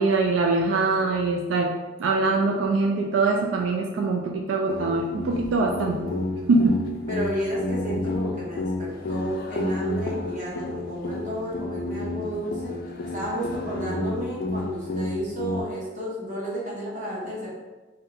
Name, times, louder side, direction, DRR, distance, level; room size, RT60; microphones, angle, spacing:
voice 1, 0.0-1.7 2.0-6.0 6.5-6.9, right 3 dB, 90° right, 2 dB, 0.3 m, -23 dB
sound 1, 4.7-15.6, left 2 dB, 50° left, 0.3 m, -31 dB
voice 2, 5.8-6.2 7.1-12.8 13.1-17.5, right 1 dB, 40° right, -6 dB, 1.1 m, -32 dB
2.7 x 2.2 x 3.9 m, 1.2 s
head